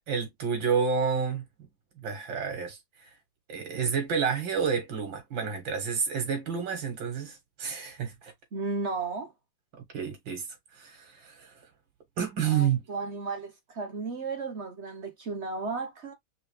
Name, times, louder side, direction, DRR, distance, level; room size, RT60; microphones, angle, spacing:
voice 1, 0.1-1.4 2.0-3.1 3.5-8.3 9.7-10.5 10.8-11.5 12.2-12.8, right 6 dB, 80° right, 2.6 m, -30 dB
voice 2, 8.5-9.3 12.4-16.1, right 4 dB, 45° right, 1.0 m, -34 dB
4.9 x 3.1 x 3.2 m
omnidirectional pair, 2.0 m